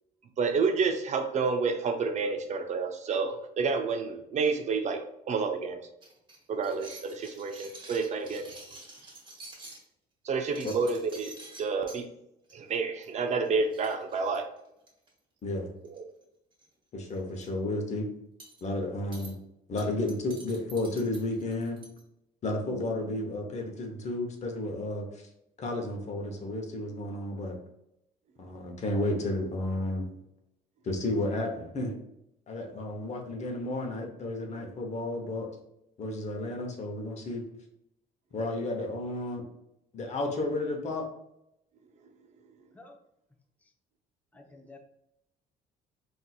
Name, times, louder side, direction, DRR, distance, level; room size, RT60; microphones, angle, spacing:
voice 1, 0.4-5.8 6.5-8.6 10.2-12.1 12.5-14.5 15.8-16.0, right 4 dB, 45° right, 6 dB, 0.4 m, -29 dB
sound 1, 6.0-9.8 10.3-12.0 12.5-12.8 13.0-13.2 13.4-13.5 13.7-15.1 15.8-16.2 16.5-16.7 17.0-17.5 18.4-18.6 19.1-19.3 19.8-22.0, right 2 dB, 30° right, 1.2 m, -48 dB
voice 2, 16.9-18.1 18.6-19.3 19.7-21.8 22.4-25.3 25.6-27.6 28.4-30.1 30.8-32.0 32.5-35.5 36.0-37.4 38.3-39.5 39.9-41.1, left 1 dB, 40° left, 3 dB, 0.8 m, -32 dB
voice 3, 44.3-44.8, left 3 dB, 10° left, 3 dB, 0.5 m, -51 dB
4.1 x 2.6 x 2.3 m, 0.82 s
cardioid pair, 110°, 17 cm